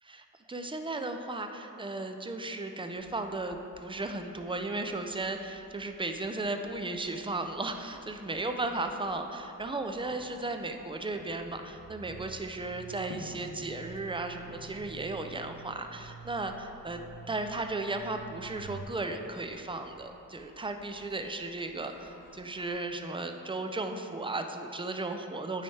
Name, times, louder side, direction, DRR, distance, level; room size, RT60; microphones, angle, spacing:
voice 1, 0.0-25.6, right 2 dB, 15° right, 6 dB, 0.4 m, -35 dB
sound 1, 3.0-22.7, left 1 dB, 55° left, 0.9 m, -55 dB
sound 2, 11.8-18.9, right 6 dB, 70° right, 0.5 m, -49 dB
8.8 x 3.3 x 4.2 m, 2.7 s
wide cardioid pair, 65°, 34 cm